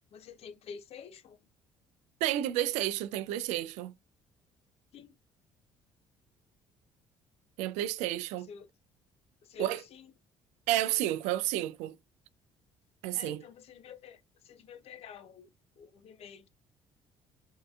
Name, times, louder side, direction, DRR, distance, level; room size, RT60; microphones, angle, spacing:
voice 1, 0.3-1.2 4.9-5.1 8.5-8.6 9.5-9.7 13.1-13.3 13.8-14.2 14.7-15.5 16.0-16.4, left 6 dB, 60° left, 0.7 m, -46 dB
voice 2, 2.2-3.9 7.6-8.5 9.6-9.9 10.7-12.0 13.0-13.4, right 14 dB, 80° right, 0.4 m, -31 dB
3.6 x 2.6 x 2.3 m
supercardioid pair, 70°, 12 cm